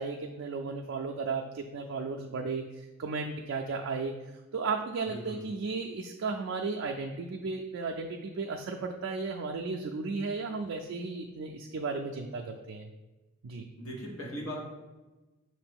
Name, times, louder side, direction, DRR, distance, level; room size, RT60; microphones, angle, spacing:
voice 1, 0.0-2.6 3.0-4.1 4.5-12.9 13.4-13.7, right 4 dB, 65° right, 1 dB, 0.3 m, -34 dB
voice 2, 5.1-5.4 13.8-14.6, equal, 80° left, -3 dB, 1.2 m, -39 dB
5.7 x 2.6 x 3.5 m, 1.1 s
head